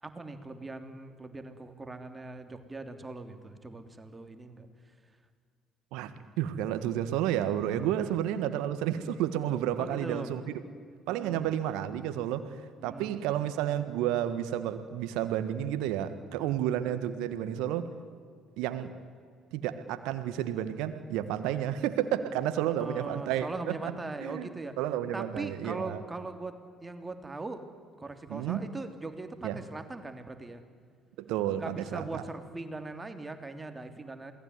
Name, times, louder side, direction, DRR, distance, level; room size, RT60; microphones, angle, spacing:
voice 1, 0.0-4.7 8.0-8.1 9.8-10.3 11.1-11.4 12.8-13.2 16.3-16.6 22.8-24.7 25.1-27.6 28.0-30.6 31.6-34.3, right 3 dB, 20° right, 7 dB, 3.2 m, -40 dB
voice 2, 5.9-10.4 11.1-12.6 12.8-17.9 18.6-18.9 19.5-23.9 24.2-24.5 24.8-26.0 28.3-28.7 29.4-29.6 31.2-32.2, right 11 dB, 70° right, 11 dB, 1.5 m, -31 dB
28.0 x 19.5 x 9.6 m, 2.1 s
hypercardioid pair, 55°, 0 cm